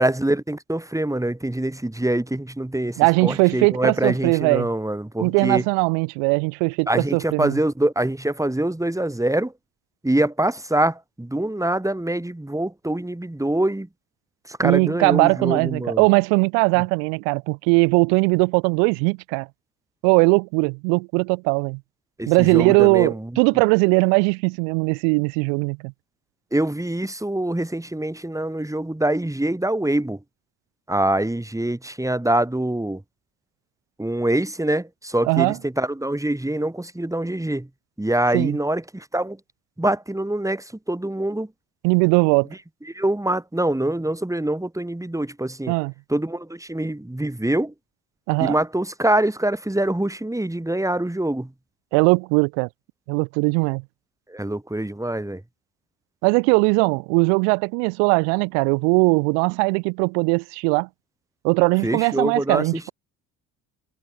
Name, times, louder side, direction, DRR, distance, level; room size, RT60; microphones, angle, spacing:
voice 1, 0.0-5.6 6.9-9.5 10.0-13.9 14.5-16.1 22.2-23.3 26.5-30.2 30.9-33.0 34.0-37.7 38.0-39.4 39.8-41.5 42.9-45.7 46.1-47.7 48.4-51.5 54.3-55.4 61.8-62.9, right 1 dB, 5° right, 6.4 m, -24 dB
voice 2, 3.0-4.7 5.2-7.6 14.6-19.5 20.0-21.8 22.3-25.9 35.2-35.6 38.3-38.6 41.8-42.5 45.7-45.9 48.3-48.6 51.9-52.7 53.1-53.8 56.2-60.9 61.4-62.9, right 40 dB or more, 65° right, 4.9 m, -20 dB
figure-of-eight pair, 55°, 47 cm